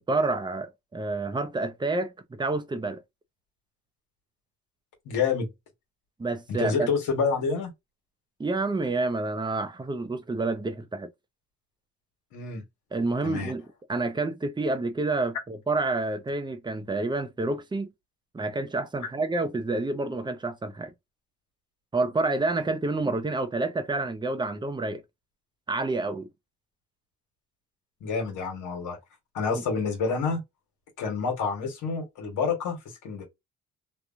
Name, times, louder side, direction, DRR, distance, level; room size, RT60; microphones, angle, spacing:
voice 1, 0.0-2.1 2.4-3.0 6.2-6.9 8.4-11.1 12.9-17.9 18.3-20.9 21.9-25.0 25.7-26.3, right 3 dB, 15° right, 0.6 m, -28 dB
voice 2, 5.1-5.5 6.5-7.7 12.3-12.6 13.2-13.5 28.0-29.0 29.3-30.4 31.0-32.8 33.0-33.2, left 5 dB, 85° left, 1.3 m, -28 dB
3.0 x 2.2 x 2.4 m
cardioid pair, 90°, 30 cm